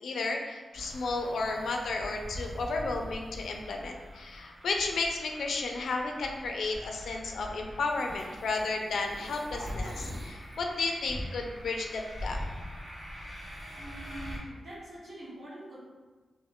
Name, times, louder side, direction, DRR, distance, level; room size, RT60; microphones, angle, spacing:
voice 1, 0.0-12.4, left 3 dB, 80° left, 2 dB, 0.4 m, -33 dB
sound 1, 0.7-14.4, equal, 90° right, 1.4 m, -42 dB
voice 2, 13.7-15.8, right 1 dB, 75° right, -8 dB, 1.2 m, -45 dB
2.6 x 2.2 x 3.5 m, 1.3 s
wide cardioid pair, 145°, 0 cm